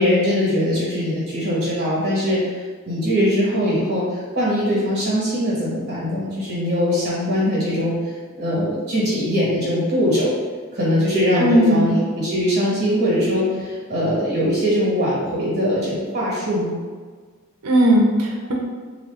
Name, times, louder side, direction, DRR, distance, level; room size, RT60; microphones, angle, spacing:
voice 1, 0.0-10.3 10.7-16.8, equal, 45° right, -7 dB, 1.1 m, -21 dB
voice 2, 11.4-11.9 17.6-18.5, equal, 85° right, -1 dB, 0.7 m, -16 dB
2.8 x 2.5 x 3.4 m, 1.5 s
head